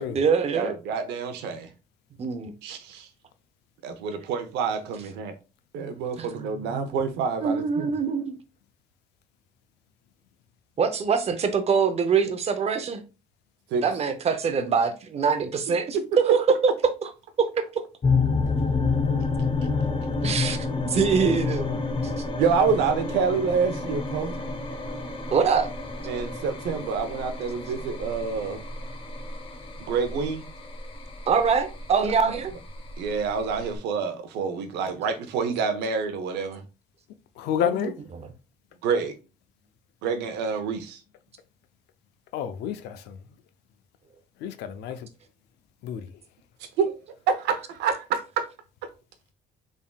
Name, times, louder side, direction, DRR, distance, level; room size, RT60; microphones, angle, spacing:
voice 1, 0.0-0.8 2.2-2.5 6.3-6.8 7.4-8.4 10.8-13.0 13.8-16.6 17.4-17.5 20.2-21.8 25.3-25.7 31.3-32.5 37.6-37.9 38.2-38.3, right 6 dB, 40° right, 0.6 m, -24 dB
voice 2, 0.5-1.7 2.6-3.1 3.8-5.3 5.7-7.9 13.7-13.8 15.9-16.6 22.3-24.3 26.0-28.6 29.9-30.5 32.2-32.3 33.0-36.6 38.8-39.1 40.0-41.0 46.8-46.9 47.3-48.2, right 5 dB, 85° right, 0.7 m, -27 dB
sound 1, 18.0-33.8, left 4 dB, 30° left, 0.7 m, -29 dB
voice 3, 37.4-37.9 42.3-43.2 44.4-45.0 45.8-46.1, left 10 dB, 80° left, 0.5 m, -29 dB
3.7 x 3.6 x 2.3 m
cardioid pair, 110°, 17 cm